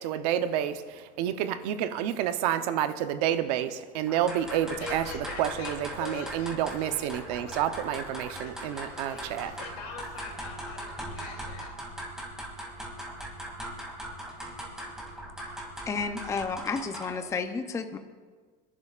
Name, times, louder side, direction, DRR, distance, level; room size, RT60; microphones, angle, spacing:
voice 1, 0.0-9.5, right 10 dB, 85° right, 10 dB, 0.9 m, -29 dB
sound 1, 4.1-17.3, right 1 dB, 5° right, 2.5 m, -40 dB
voice 2, 4.8-7.6 8.1-11.7, left 5 dB, 85° left, 1 dB, 3.2 m, -44 dB
voice 3, 15.9-18.0, left 5 dB, 15° left, 7 dB, 0.6 m, -31 dB
27.5 x 11.0 x 2.5 m, 1.5 s
cardioid pair, 160°, 20 cm